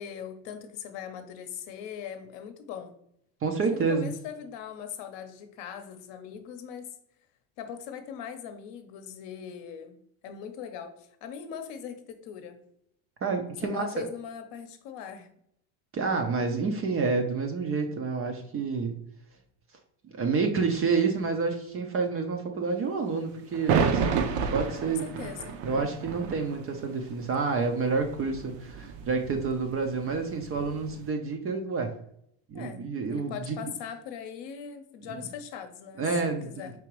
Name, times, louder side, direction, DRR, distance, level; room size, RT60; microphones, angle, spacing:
voice 1, 0.0-2.9 3.7-7.0 7.6-10.0 10.2-12.6 13.6-15.3 24.7-25.6 32.5-36.7, left 8 dB, 60° left, 7 dB, 0.8 m, -40 dB
voice 2, 3.4-4.1 13.2-14.0 15.9-19.0 20.0-25.0 25.6-32.0 32.5-33.6 35.1-35.2 36.0-36.7, right 4 dB, 30° right, 5 dB, 0.4 m, -29 dB
sound 1, 23.5-31.0, right 6 dB, 60° right, 0.7 m, -31 dB
4.7 x 2.9 x 3.0 m, 0.71 s
supercardioid pair, 100°, 50 cm